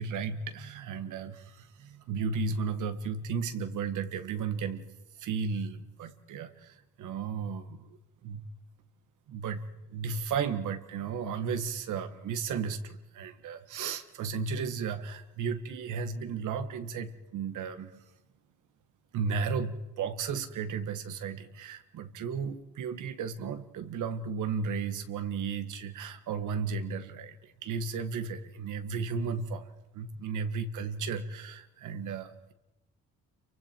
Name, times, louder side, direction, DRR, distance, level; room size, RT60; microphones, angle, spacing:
voice 1, 0.0-4.8 5.2-8.4 9.3-9.6 9.9-18.0 19.1-29.7 29.9-32.5, right 5 dB, 80° right, 9 dB, 1.7 m, -34 dB
28.5 x 23.5 x 4.5 m, 0.93 s
cardioid pair, 90°, 30 cm